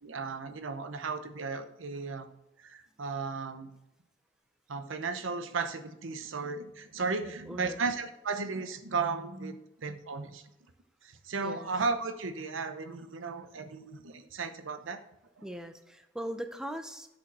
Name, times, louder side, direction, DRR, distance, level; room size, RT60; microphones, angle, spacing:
voice 1, 0.0-2.3 2.6-3.7 4.7-10.4 11.0-15.0 15.4-15.5, right 4 dB, 85° right, 9 dB, 0.8 m, -35 dB
voice 2, 7.5-7.8 11.4-11.7 15.4-17.1, equal, 5° right, 6 dB, 0.6 m, -39 dB
7.0 x 5.3 x 6.0 m, 0.89 s
head